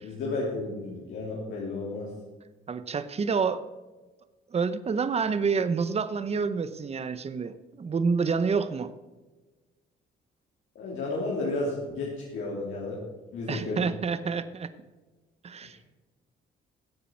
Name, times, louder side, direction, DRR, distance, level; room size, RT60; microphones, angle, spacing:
voice 1, 0.0-2.1 10.7-13.0 13.3-13.9, left 2 dB, 80° left, -5 dB, 3.1 m, -32 dB
voice 2, 2.7-3.6 4.5-8.9 13.5-14.7 15.4-15.9, right 5 dB, 30° right, 13 dB, 0.8 m, -28 dB
15.5 x 8.4 x 4.6 m, 1.2 s
cardioid pair, 90°, 20 cm